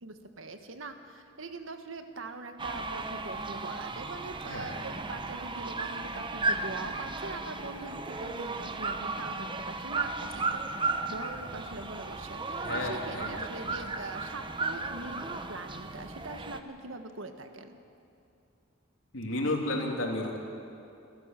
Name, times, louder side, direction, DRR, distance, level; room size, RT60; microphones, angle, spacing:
voice 1, 0.0-17.8, right 3 dB, 85° right, 7 dB, 1.5 m, -42 dB
sound 1, 2.6-16.6, right 3 dB, 25° right, 0.9 m, -35 dB
voice 2, 4.4-4.8 12.6-13.4 19.1-20.4, left 1 dB, 80° left, 1 dB, 3.1 m, -32 dB
27.0 x 12.5 x 7.6 m, 2.6 s
head